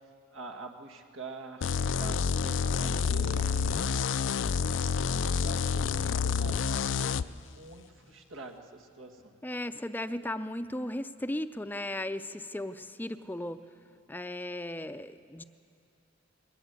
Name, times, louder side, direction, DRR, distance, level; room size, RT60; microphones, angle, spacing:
voice 1, 0.3-3.8 4.2-9.3, right 2 dB, 90° right, 2 dB, 1.8 m, -46 dB
sound 1, 1.6-7.2, left 6 dB, 75° left, 0.4 m, -28 dB
voice 2, 9.4-13.6 14.1-15.4, left 1 dB, 10° left, 11 dB, 0.5 m, -36 dB
21.5 x 17.5 x 8.1 m, 2.7 s
head